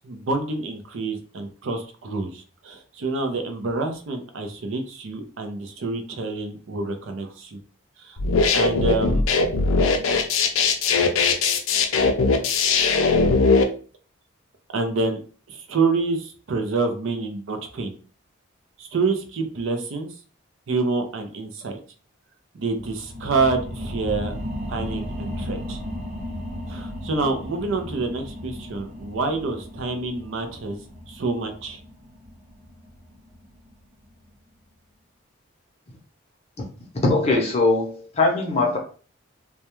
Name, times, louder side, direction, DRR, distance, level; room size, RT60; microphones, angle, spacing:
voice 1, 0.0-7.6 8.0-8.2 8.5-9.3 14.7-15.2 15.5-18.0 18.8-20.1 20.7-21.8 22.5-24.3 24.7-25.8 26.7-30.8 31.1-31.8, right 3 dB, 65° right, 5 dB, 0.5 m, -27 dB
sound 1, 8.2-13.6, left 4 dB, 75° left, 0.4 m, -19 dB
sound 2, 22.7-33.8 34.3-34.4, left 1 dB, 50° right, 0.9 m, -35 dB
voice 2, 37.0-38.8, left 3 dB, 30° left, -1 dB, 0.6 m, -21 dB
2.2 x 2.1 x 2.9 m, 0.39 s
head